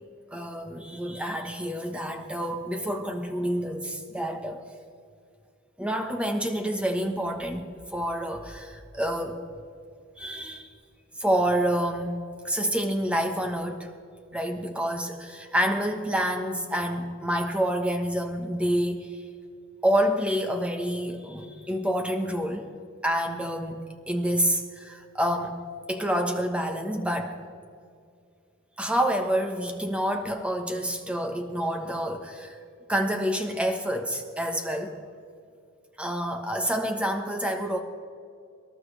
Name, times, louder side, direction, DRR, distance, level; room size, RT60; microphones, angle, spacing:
voice 1, 0.3-4.6 5.8-9.4 10.2-10.7 11.2-12.2 12.4-13.9 14.3-19.2 19.8-22.7 23.0-25.6 25.9-27.4 28.8-32.6 32.9-35.0 36.0-37.8, equal, 5° right, 4 dB, 1.1 m, -28 dB
25.0 x 12.0 x 3.4 m, 2.3 s
head